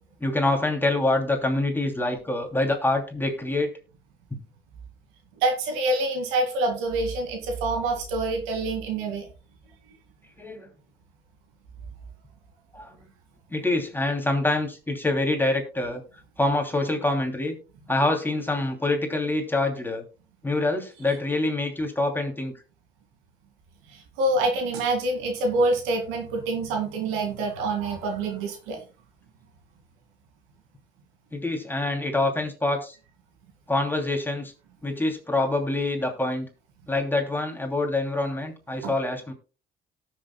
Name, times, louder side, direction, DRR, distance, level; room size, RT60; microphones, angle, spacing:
voice 1, 0.2-3.7 10.4-10.7 12.7-13.0 13.5-16.0 16.4-17.6 17.9-20.0 20.4-22.5 31.3-32.9 33.7-34.5 34.8-36.5 36.9-39.3, left 2 dB, 10° left, 3 dB, 2.7 m, -25 dB
voice 2, 5.4-9.3 23.9-28.8 38.8-38.9, right 2 dB, 85° right, 3 dB, 2.3 m, -26 dB
18.0 x 6.7 x 2.2 m, 0.34 s
supercardioid pair, 65°, 21 cm